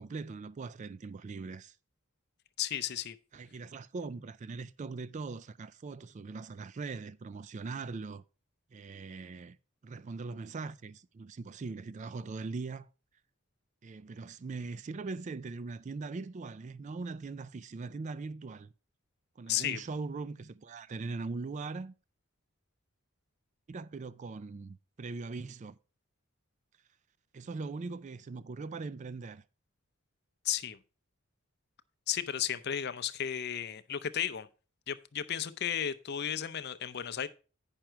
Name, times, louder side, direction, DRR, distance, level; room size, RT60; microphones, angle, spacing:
voice 1, 0.0-1.8 3.3-8.2 8.7-9.6 9.8-12.9 13.8-18.7 19.4-21.9 23.7-25.8 27.3-29.4, right 4 dB, 35° right, 0.3 m, -41 dB
voice 2, 2.6-3.2 19.5-19.8 30.4-30.8 32.1-34.5 34.9-37.3, left 10 dB, 50° left, 0.5 m, -34 dB
9.0 x 5.9 x 4.5 m
head